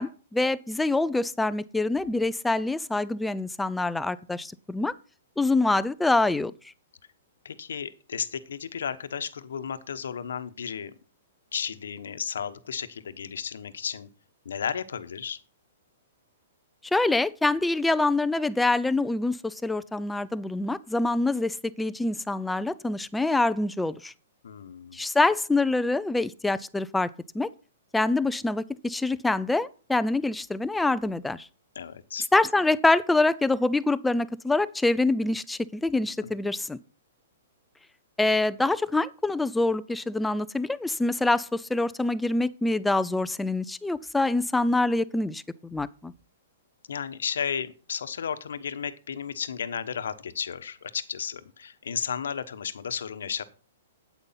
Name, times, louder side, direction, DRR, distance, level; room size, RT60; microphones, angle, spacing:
voice 1, 0.0-4.9 5.4-6.5 16.8-24.1 24.9-27.1 27.3-27.5 27.9-31.5 32.3-36.8 38.2-46.1, left 2 dB, 5° left, 0.5 m, -25 dB
voice 2, 7.4-10.9 11.5-14.1 14.4-15.4 24.4-25.0 31.8-32.3 36.2-36.3 46.9-53.4, left 7 dB, 80° left, 1.0 m, -33 dB
8.8 x 8.2 x 5.6 m
hypercardioid pair, 135°, 0 cm